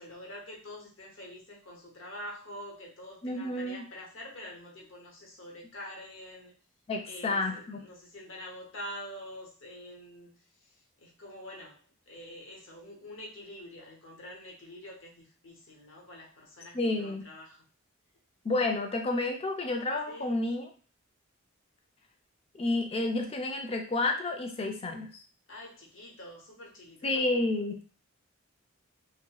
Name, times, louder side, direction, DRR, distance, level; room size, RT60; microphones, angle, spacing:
voice 1, 0.0-6.5 7.1-10.3 10.6-10.7 11.0-17.6 20.1-20.3 25.5-27.1, left 1 dB, 60° left, -1 dB, 0.9 m, -46 dB
voice 2, 3.2-3.8 6.9-7.8 16.7-17.2 18.4-20.7 22.5-25.1 27.0-27.8, left 2 dB, 25° left, 4 dB, 0.3 m, -30 dB
2.8 x 2.5 x 2.3 m, 0.38 s
head